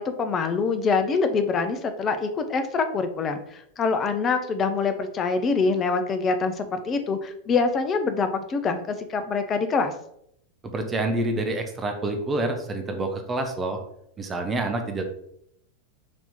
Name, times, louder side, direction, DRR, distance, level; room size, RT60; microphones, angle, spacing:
voice 1, 0.0-9.9, left 4 dB, 25° left, 8 dB, 0.5 m, -25 dB
voice 2, 10.7-13.8 14.2-15.0, right 2 dB, 20° right, 5 dB, 0.7 m, -27 dB
4.1 x 2.8 x 3.6 m, 0.72 s
figure-of-eight pair, 90°, 0 cm